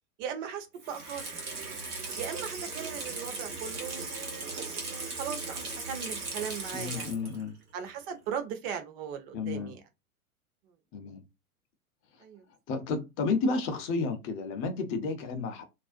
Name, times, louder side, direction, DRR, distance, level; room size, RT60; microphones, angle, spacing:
voice 1, 0.2-1.3 2.1-7.1 7.7-9.8 12.2-12.4, right 7 dB, 45° right, 0.8 m, -38 dB
Water tap faucet / Sink (filling or washing), 0.8-7.5 7.8-7.9, right 3 dB, 85° right, 1.0 m, -38 dB
voice 2, 6.7-7.5 9.3-9.8 10.9-11.2 12.7-15.6, left 4 dB, 30° left, 0.5 m, -31 dB
2.5 x 2.1 x 2.5 m
hypercardioid pair, 95°, 43 cm